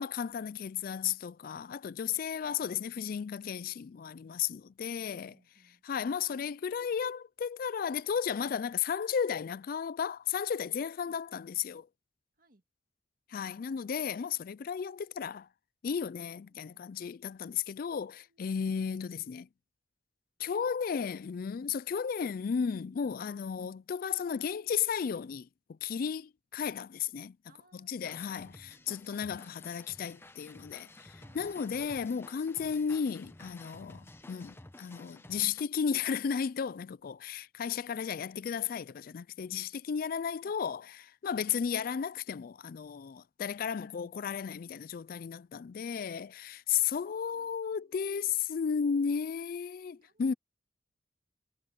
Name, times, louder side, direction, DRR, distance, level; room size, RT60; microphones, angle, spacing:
voice 1, 0.0-5.3 5.8-11.9 13.3-15.5 15.8-19.5 20.4-27.4 27.7-50.3, left 7 dB, 50° left, 0.4 m, -34 dB
voice 2, 5.0-5.8 11.0-11.2 12.4-12.6 16.5-16.8 17.9-19.0 23.6-23.8 27.5-29.6 31.2-31.6 37.8-39.2 40.3-40.6 41.5-41.7 43.7-44.2 46.7-48.3 49.4-49.5 49.9-50.4, right 1 dB, 50° right, 2.0 m, -66 dB
sound 1, 28.0-35.6, left 1 dB, 15° left, 0.9 m, -53 dB
head